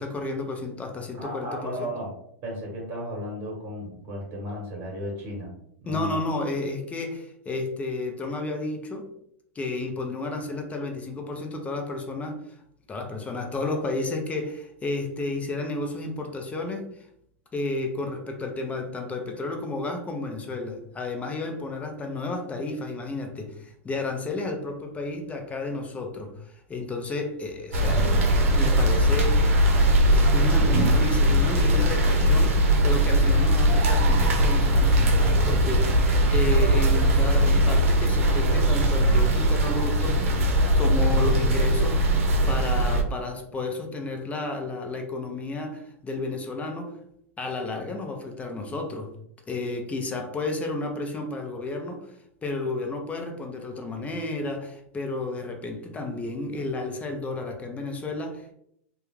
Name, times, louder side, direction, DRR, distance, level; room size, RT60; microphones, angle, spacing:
voice 1, 0.0-1.9 5.9-9.1 9.5-12.6 12.9-17.1 17.5-28.3 28.5-29.6 30.1-40.4 40.8-42.2 42.5-47.0 47.4-49.1 49.5-58.5, left 2 dB, 20° left, 4 dB, 0.6 m, -32 dB
voice 2, 1.1-2.1 2.4-5.5 5.8-6.2, equal, 35° right, -2 dB, 1.1 m, -34 dB
sound 1, 27.7-43.0, right 1 dB, 80° right, 0.6 m, -20 dB
2.3 x 2.2 x 3.2 m, 0.72 s
hypercardioid pair, 110°, 7 cm